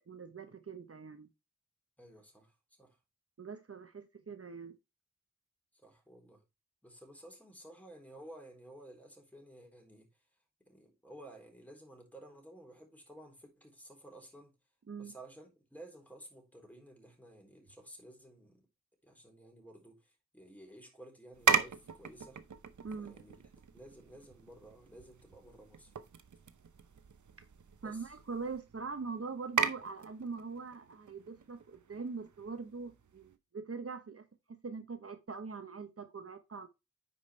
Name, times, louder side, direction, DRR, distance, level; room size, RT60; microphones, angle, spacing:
voice 1, 0.1-1.3 3.4-4.8 14.9-15.1 22.8-23.1 27.8-36.7, right 4 dB, 50° right, 1.0 m, -43 dB
voice 2, 2.0-3.0 5.8-6.4 6.8-10.1 10.7-14.5 15.0-18.6 19.0-22.4 23.0-23.4 23.7-25.9 27.8-28.1, right 1 dB, 5° left, 3.9 m, -54 dB
sound 1, 21.3-33.3, right 6 dB, 80° right, 0.9 m, -38 dB
9.5 x 5.2 x 3.3 m
cardioid pair, 45°, 29 cm